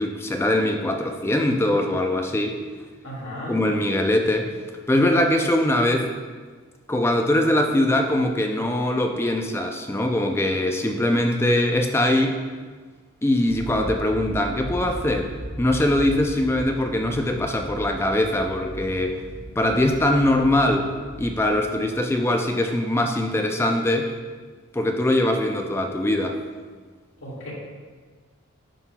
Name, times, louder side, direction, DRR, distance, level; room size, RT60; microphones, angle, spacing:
voice 1, 0.0-2.6 3.5-4.5 4.9-6.1 6.9-12.4 13.2-15.3 15.6-19.2 19.6-20.9 21.2-24.1 24.7-26.4, left 1 dB, 10° left, 3 dB, 0.4 m, -22 dB
voice 2, 3.0-3.6 27.2-27.5, equal, 65° left, -5 dB, 2.0 m, -34 dB
sound 1, 13.5-21.5, equal, 20° right, 2.1 m, -37 dB
9.9 x 5.7 x 2.3 m, 1.5 s
head